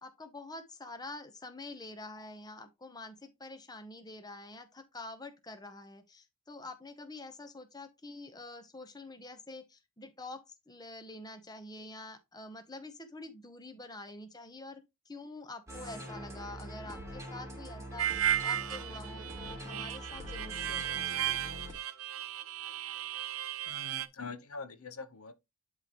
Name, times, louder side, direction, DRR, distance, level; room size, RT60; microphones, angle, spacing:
voice 1, 0.0-10.4 10.7-21.3, left 2 dB, 20° left, 0.9 m, -47 dB
sound 1, 15.7-21.7, equal, 15° right, 2.6 m, -44 dB
Harmonica, 18.0-24.1, right 11 dB, 70° right, 0.7 m, -35 dB
voice 2, 23.7-25.4, left 4 dB, 75° left, 1.0 m, -44 dB
11.5 x 3.8 x 3.0 m
head